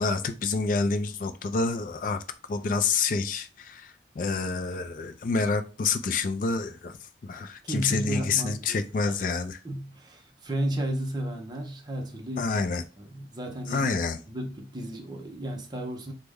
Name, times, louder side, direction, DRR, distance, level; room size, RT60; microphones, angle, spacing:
voice 1, 0.0-2.2 2.5-6.9 7.2-9.6 12.4-12.8 13.7-14.2, left 4 dB, 45° left, 0.3 m, -28 dB
voice 2, 7.6-9.2 9.6-12.6 13.0-13.9 14.3-16.1, right 1 dB, 25° right, 0.5 m, -33 dB
3.2 x 2.0 x 3.4 m
head